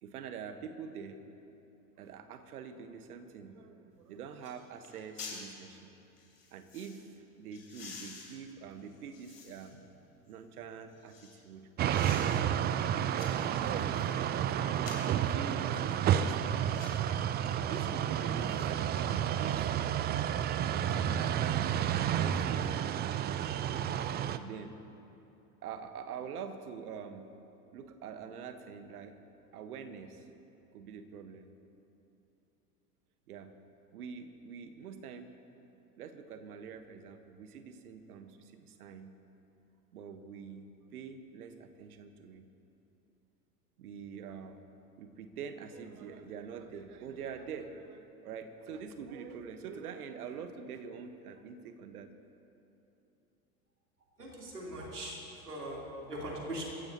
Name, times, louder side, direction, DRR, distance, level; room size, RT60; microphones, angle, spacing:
voice 1, 0.0-1.2 2.0-5.9 6.5-9.8 10.3-11.7 12.3-12.6 13.0-14.7 15.1-16.9 17.6-19.8 20.1-20.5 20.9-21.6 21.9-22.7 24.3-24.8 25.6-27.3 27.7-29.2 29.5-30.3 30.7-31.5 33.3-33.5 33.9-35.3 36.0-39.2 39.9-42.5 43.8-44.6 45.0-52.1, right 6 dB, 70° right, 8 dB, 1.3 m, -45 dB
sound 1, 3.9-4.0 4.4-4.6 4.8-5.4 6.2-7.0 7.5-9.8 10.3-11.4 11.9-12.4 12.8-14.1 14.8-15.2 15.8-16.0 16.6-17.0 17.7-17.9 18.2-19.1 19.4-19.5, left 5 dB, 80° left, 3.3 m, -49 dB
sound 2, 11.8-24.4, right 10 dB, 20° right, 0.4 m, -31 dB
voice 2, 54.2-56.6, right 1 dB, 85° right, -3 dB, 3.4 m, -41 dB
25.5 x 15.0 x 2.9 m, 2.9 s
figure-of-eight pair, 80°, 46 cm